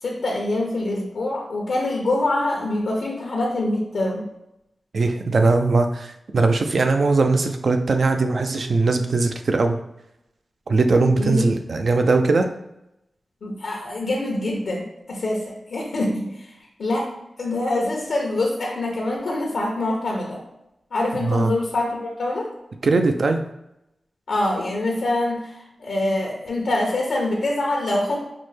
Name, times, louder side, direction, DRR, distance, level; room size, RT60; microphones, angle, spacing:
voice 1, 0.0-4.3 11.1-11.5 13.4-16.5 16.8-17.1 17.4-20.4 20.9-22.5 24.3-28.3, left 2 dB, 85° left, -2 dB, 0.7 m, -25 dB
voice 2, 4.9-9.8 10.7-12.5 21.2-21.5 22.8-23.4, right 3 dB, 70° right, 6 dB, 0.4 m, -20 dB
5.8 x 2.1 x 3.2 m, 0.85 s
cardioid pair, 50°, 0 cm